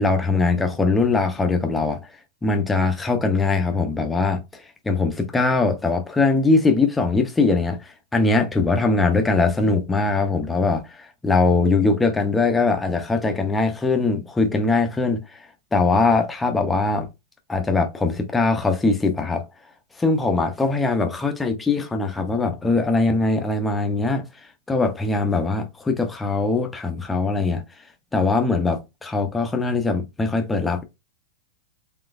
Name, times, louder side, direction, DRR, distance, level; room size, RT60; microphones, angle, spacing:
voice 1, 0.0-2.1 2.4-17.1 17.5-19.4 20.0-24.3 24.7-27.6 28.1-30.8, left 3 dB, 5° left, 0.6 m, -21 dB
3.9 x 3.6 x 2.5 m
supercardioid pair, 170°, 0 cm